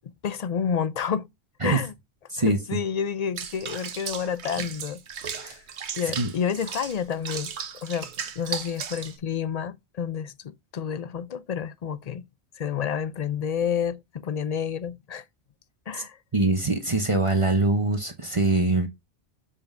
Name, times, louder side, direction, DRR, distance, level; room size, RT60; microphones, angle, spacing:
voice 1, 0.2-1.3 1.6-1.9 2.5-5.0 5.4-5.6 6.0-7.5 7.8-8.1 8.4-12.2 12.6-15.2 15.9-16.2, left 7 dB, 50° left, 0.5 m, -29 dB
voice 2, 2.3-2.8 5.4-5.5 6.2-6.3 16.3-18.9, right 2 dB, 30° right, 0.9 m, -23 dB
Water / Bathtub (filling or washing), 3.4-9.2, right 7 dB, 80° right, 1.2 m, -36 dB
7.0 x 5.4 x 2.6 m
omnidirectional pair, 1.1 m